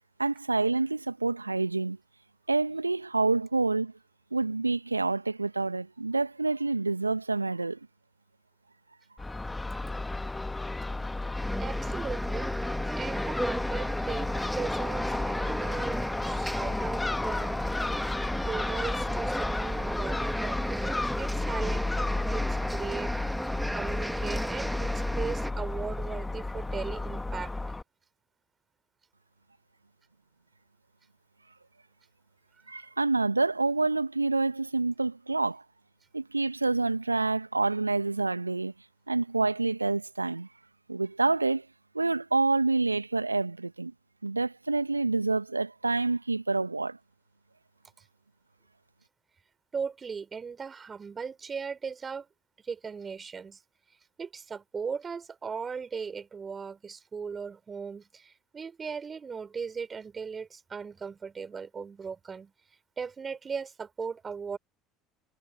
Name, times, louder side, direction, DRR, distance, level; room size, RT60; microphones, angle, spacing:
voice 1, 0.2-2.0 2.5-3.9 4.3-7.8 32.7-35.6 36.1-38.7 39.1-40.5 40.9-41.7 41.9-43.9 44.2-47.0, right 3 dB, 85° right, 1.9 m, -27 dB
Crow / Gull seagull, 9.2-27.8, left 2 dB, 10° left, 1.6 m, -32 dB
sound 1, 11.3-25.5, right 1 dB, 5° right, 2.3 m, -35 dB
voice 2, 11.6-12.5 13.0-17.9 18.4-23.2 23.5-27.5 49.7-52.3 52.6-53.6 54.2-62.5 63.0-64.6, right 5 dB, 25° right, 4.5 m, -38 dB
figure-of-eight pair, 65°, 0 cm